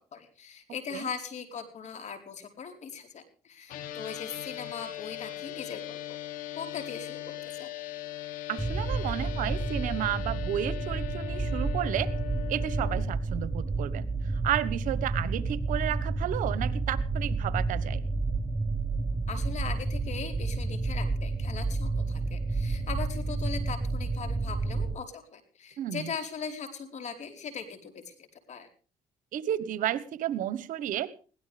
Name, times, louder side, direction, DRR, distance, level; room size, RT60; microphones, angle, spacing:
voice 1, 0.1-6.0 6.6-7.7 19.3-28.7, left 6 dB, 55° left, 7 dB, 4.4 m, -40 dB
sound 1, 3.7-13.0, left 14 dB, 85° left, 2.7 m, -39 dB
voice 2, 8.5-12.1 12.5-14.1 14.3-18.1 25.8-26.1 29.3-31.1, right 12 dB, 75° right, 17 dB, 1.3 m, -32 dB
sound 2, 8.6-25.0, right 3 dB, 20° right, 1.2 m, -30 dB
21.5 x 17.0 x 3.5 m, 0.39 s
cardioid pair, 90°, 14 cm